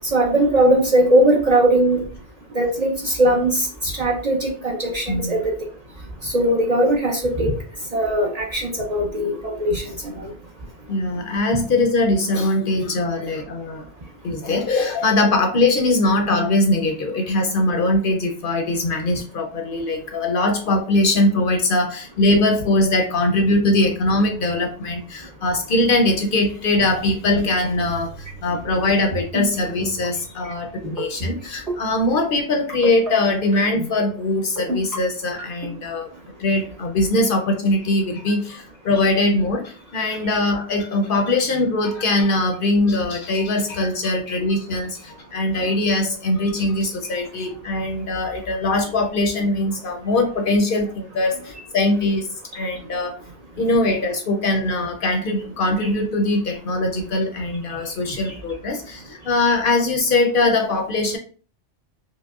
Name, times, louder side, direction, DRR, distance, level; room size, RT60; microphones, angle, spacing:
voice 1, 0.1-2.0 2.5-5.4 6.2-7.5 7.9-10.3 40.3-40.4, right 1 dB, 45° right, 0 dB, 0.6 m, -19 dB
voice 2, 10.9-13.8 14.2-36.1 36.4-52.3 52.5-53.2 53.6-61.2, left 2 dB, 60° left, 3 dB, 0.6 m, -21 dB
sound 1, 29.0-29.5 29.8-30.1 30.8-31.3 31.7-31.9 32.7-33.1 33.5-33.9 34.6-35.0 35.4-35.7, equal, 65° right, 1.8 m, -27 dB
4.8 x 2.0 x 2.3 m, 0.40 s
omnidirectional pair, 1.2 m